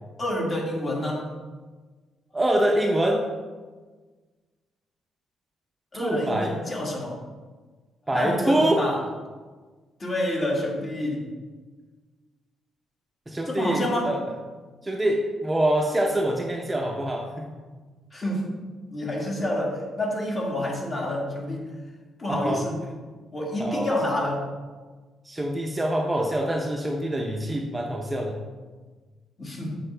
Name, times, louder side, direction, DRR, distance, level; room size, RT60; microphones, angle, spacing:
voice 1, 0.2-1.3 5.9-7.2 8.1-9.0 10.0-11.3 13.5-14.1 18.1-18.6 18.9-21.7 22.2-22.8 23.3-24.5 29.4-29.7, left 1 dB, 35° left, -2 dB, 1.9 m, -28 dB
voice 2, 2.3-3.2 5.9-6.5 8.1-8.8 13.3-14.2 14.8-17.5 22.3-22.6 23.6-23.9 25.2-28.4, right 1 dB, 15° right, 1 dB, 0.7 m, -25 dB
7.5 x 5.0 x 3.3 m, 1.4 s
cardioid pair, 90°, 0 cm